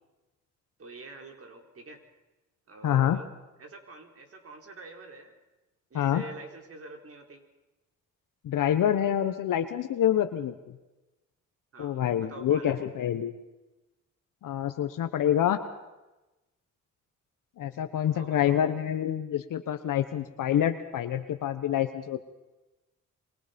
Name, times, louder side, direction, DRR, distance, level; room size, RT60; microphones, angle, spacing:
voice 1, 0.8-2.0 2.7-3.3 3.6-5.3 5.9-7.4 11.7-12.9 18.1-18.6, right 2 dB, 45° right, 3 dB, 4.4 m, -46 dB
voice 2, 2.8-3.2 5.9-6.2 8.4-10.5 11.8-13.3 14.4-15.6 17.6-22.2, left 10 dB, 80° left, 8 dB, 1.3 m, -27 dB
27.0 x 23.5 x 5.3 m, 1.0 s
cardioid pair, 80°, 32 cm